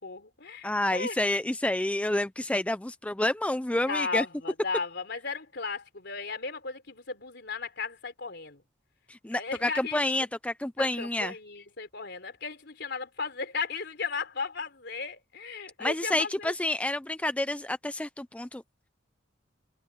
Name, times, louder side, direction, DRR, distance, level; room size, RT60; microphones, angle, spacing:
voice 1, 0.0-1.1 3.9-8.6 9.3-10.0 10.8-16.5, left 4 dB, 60° left, 4.2 m, -35 dB
voice 2, 0.6-4.3 9.1-11.3 15.8-18.6, left 1 dB, 5° left, 0.4 m, -29 dB
head